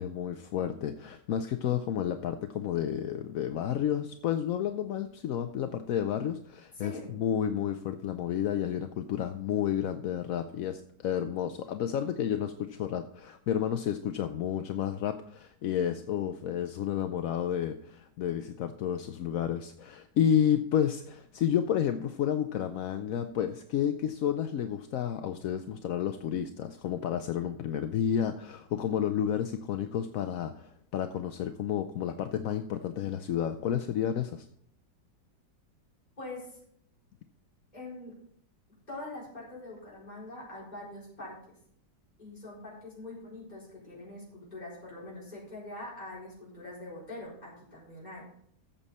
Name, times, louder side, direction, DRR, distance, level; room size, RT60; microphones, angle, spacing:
voice 1, 0.0-34.5, left 9 dB, 65° left, 8 dB, 0.9 m, -31 dB
voice 2, 6.7-7.1 36.2-36.6 37.7-38.1 38.9-41.5 42.2-48.3, left 2 dB, 20° left, -6 dB, 4.7 m, -43 dB
14.5 x 7.0 x 4.2 m, 0.67 s
omnidirectional pair, 1.9 m